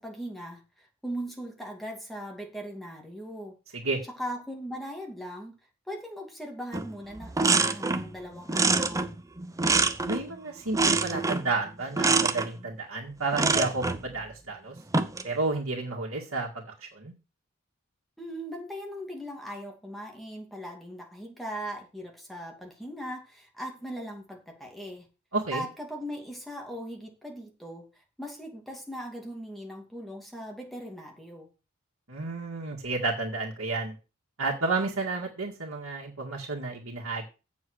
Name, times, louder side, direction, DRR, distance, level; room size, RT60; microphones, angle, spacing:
voice 1, 0.0-3.6 4.2-5.6 5.9-9.1 18.2-25.1 25.5-27.9 28.2-31.5, equal, ahead, 1 dB, 2.5 m, -39 dB
sound 1, 6.7-6.9 7.2-8.1 8.5-10.3 10.7-11.5 12.0-12.5 13.3-14.0 14.8-15.3, right 3 dB, 15° right, 0.6 m, -25 dB
voice 2, 10.1-14.8 15.2-17.1 25.3-25.7 32.1-34.0 34.4-37.3, right 3 dB, 90° right, -3 dB, 2.1 m, -31 dB
8.0 x 7.1 x 6.4 m, 0.32 s
head